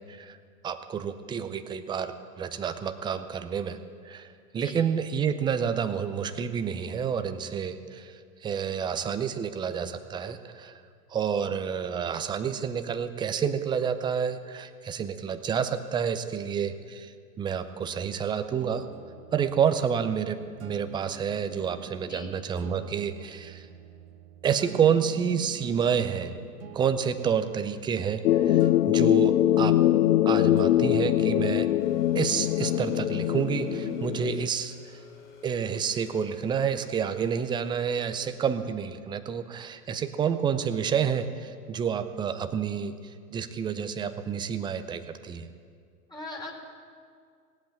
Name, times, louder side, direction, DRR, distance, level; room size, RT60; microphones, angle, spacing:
voice 1, 0.6-3.8 4.1-4.3 4.5-10.8 11.1-18.9 19.3-23.7 24.4-26.3 26.7-29.8 30.3-31.7 32.1-35.0 35.4-42.9 43.3-45.5, right 7 dB, 10° right, 10 dB, 0.4 m, -29 dB
sound 1, 18.6-34.6, right 9 dB, 60° right, 1.1 m, -46 dB
sound 2, 28.2-34.5, left 13 dB, 70° left, 0.6 m, -23 dB
sound 3, 31.8-38.1, left 5 dB, 35° left, 3.2 m, -52 dB
voice 2, 46.1-46.6, left 2 dB, 10° left, -1 dB, 2.8 m, -39 dB
17.5 x 8.2 x 8.8 m, 2.1 s
hypercardioid pair, 105°, 47 cm